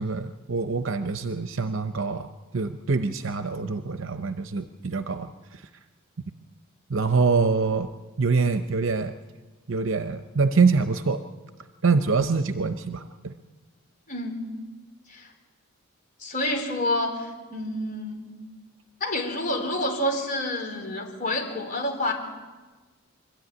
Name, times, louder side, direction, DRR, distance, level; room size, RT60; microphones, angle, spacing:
voice 1, 0.0-2.3 2.5-5.6 6.9-7.9 8.2-9.1 9.7-11.2 11.8-13.3, right 4 dB, 60° right, 9 dB, 0.7 m, -25 dB
voice 2, 14.1-14.4 15.1-15.3 16.2-18.3 19.0-22.1, left 1 dB, 40° left, 2 dB, 4.2 m, -28 dB
24.5 x 13.5 x 9.6 m, 1.3 s
head